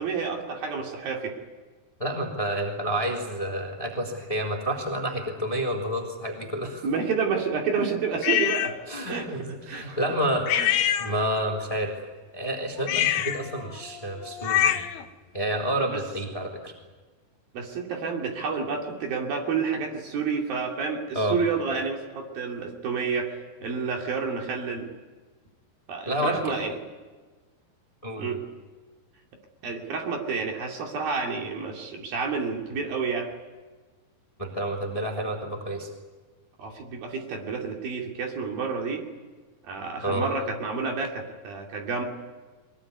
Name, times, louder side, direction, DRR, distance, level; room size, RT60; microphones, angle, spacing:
voice 1, 0.0-1.4 6.8-8.8 9.1-9.3 9.7-10.0 10.6-10.7 15.9-16.0 17.5-23.3 23.6-24.9 25.9-26.8 28.2-28.4 29.6-33.3 36.6-39.0 39.6-42.0, right 5 dB, 60° right, 2 dB, 4.2 m, -29 dB
voice 2, 2.0-6.9 8.9-10.4 11.0-11.9 12.3-14.8 15.3-16.7 21.1-21.4 26.0-26.4 28.0-28.4 34.4-35.9 40.0-40.3, right 1 dB, 10° left, 2 dB, 2.9 m, -29 dB
sound 1, 8.2-8.7 10.5-11.5 12.8-15.0, left 11 dB, 70° left, 3.0 m, -25 dB
23.5 x 21.0 x 9.7 m, 1.3 s
omnidirectional pair, 4.9 m